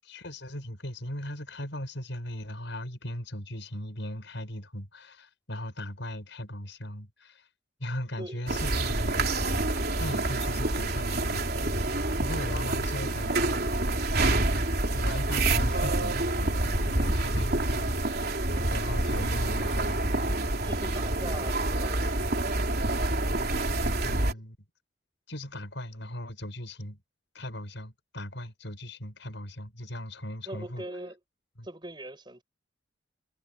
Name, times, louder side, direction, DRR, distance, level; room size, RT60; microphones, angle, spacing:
voice 1, 0.0-7.5 7.8-11.4 12.2-13.7 14.9-18.3 18.7-20.3 24.0-24.6 25.3-27.0 27.3-30.8 31.6-31.7, left 1 dB, 65° left, 6.1 m, -38 dB
sound 1, 8.5-24.3, right 2 dB, 50° right, 3.7 m, -27 dB
voice 2, 12.3-12.7 20.6-22.0 30.5-31.2 31.6-32.4, right 1 dB, 25° right, 6.5 m, -41 dB
head